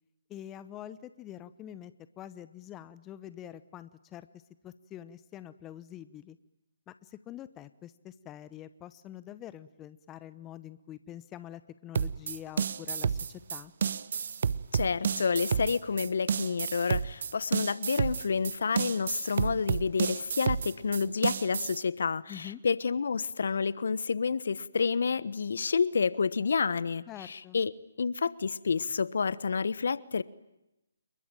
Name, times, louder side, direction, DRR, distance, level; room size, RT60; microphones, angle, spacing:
voice 1, 0.3-6.4 6.9-13.7 22.3-22.6 27.1-27.6, left 11 dB, 15° left, 14 dB, 1.0 m, -46 dB
sound 1, 11.9-21.8, right 6 dB, 55° right, 1.0 m, -30 dB
voice 2, 14.7-27.7 28.0-30.2, left 5 dB, 60° left, 18 dB, 1.2 m, -29 dB
28.0 x 22.5 x 9.1 m, 0.90 s
figure-of-eight pair, 145°, 0 cm